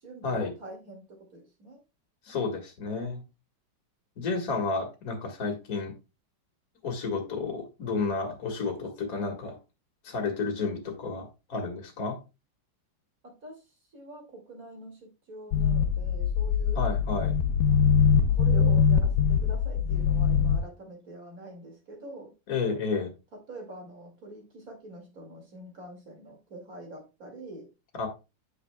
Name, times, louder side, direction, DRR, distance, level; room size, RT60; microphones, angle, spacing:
voice 1, 0.0-1.8 13.2-13.6 13.9-16.8 18.3-22.3 23.3-27.7, right 2 dB, 50° right, 1 dB, 2.7 m, -45 dB
voice 2, 2.2-3.2 4.2-5.9 6.8-9.6 10.0-12.2 16.8-17.3 22.5-23.1 27.9-28.1, left 4 dB, 50° left, 3 dB, 2.0 m, -31 dB
sound 1, 15.5-20.6, left 6 dB, 70° left, 0.9 m, -23 dB
9.6 x 6.4 x 2.3 m, 0.27 s
omnidirectional pair, 2.0 m